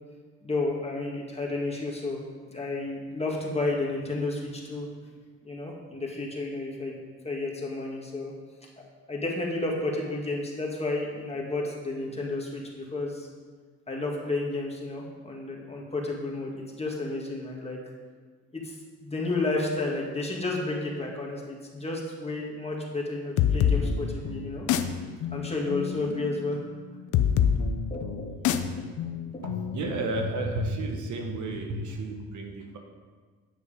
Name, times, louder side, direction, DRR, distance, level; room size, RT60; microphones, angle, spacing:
voice 1, 0.4-2.2 2.5-4.9 5.4-8.3 8.6-13.3 13.9-17.8 18.5-24.7 25.3-26.6 27.9-28.9 29.3-29.9, left 2 dB, 20° left, -2 dB, 2.2 m, -32 dB
sound 1, 23.4-30.8, left 8 dB, 80° left, 0.7 m, -28 dB
voice 2, 29.4-32.8, right 2 dB, 75° right, 2 dB, 1.5 m, -32 dB
9.8 x 6.5 x 5.2 m, 1.5 s
cardioid pair, 90°, 30 cm